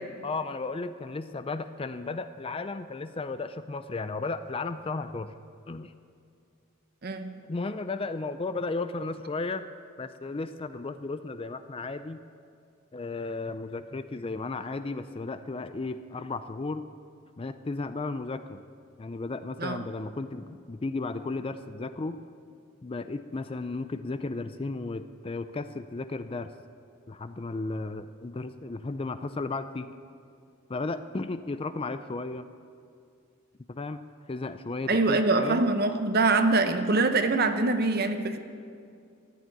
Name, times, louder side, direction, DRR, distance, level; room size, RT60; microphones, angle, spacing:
voice 1, 0.2-5.3 5.7-5.9 7.5-9.6 10.0-12.2 12.9-16.8 17.4-18.6 19.0-22.2 22.8-26.5 27.1-29.9 30.7-32.5 33.7-34.0 34.3-35.7, left 3 dB, 25° left, 11 dB, 0.4 m, -34 dB
voice 2, 7.0-7.3 19.6-19.8 34.9-38.4, right 3 dB, 45° right, 8 dB, 1.0 m, -24 dB
14.0 x 10.0 x 9.3 m, 2.4 s
head